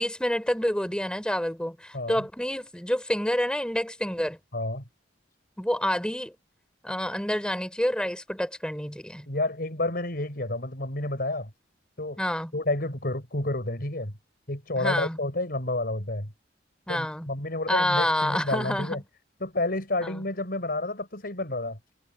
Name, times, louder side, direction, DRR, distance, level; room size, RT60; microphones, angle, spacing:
voice 1, 0.0-4.4 5.6-6.3 6.8-9.3 12.2-12.5 14.8-15.2 16.9-17.3 17.7-19.0 20.0-20.2, equal, 5° left, 4.3 m, -28 dB
voice 2, 4.5-4.8 9.3-11.5 12.0-12.2 12.5-14.1 14.5-16.3 16.9-19.0 19.4-21.8, left 2 dB, 55° left, 6.2 m, -30 dB
head